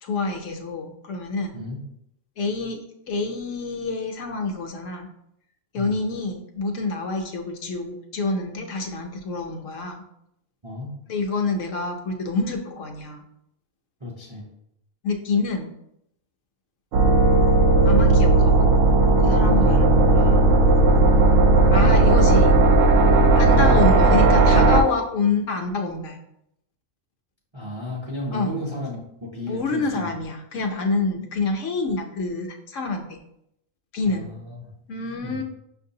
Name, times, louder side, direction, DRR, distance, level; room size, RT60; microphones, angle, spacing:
voice 1, 0.0-1.6 2.4-5.1 5.7-10.0 11.1-13.2 15.0-15.7 17.8-18.7 19.2-20.5 21.7-22.5 23.4-26.2 28.3-28.5 29.5-33.2 33.9-34.3 34.9-35.4, left 3 dB, 70° left, 3 dB, 0.9 m, -27 dB
voice 2, 10.6-10.9 14.0-14.5 19.6-19.8 22.0-22.2 27.5-30.1 34.1-34.7 35.2-35.4, left 1 dB, 35° right, -4 dB, 0.5 m, -34 dB
sound 1, 16.9-24.8, right 2 dB, 75° right, 0.9 m, -16 dB
5.9 x 2.6 x 2.7 m, 0.78 s
omnidirectional pair, 1.4 m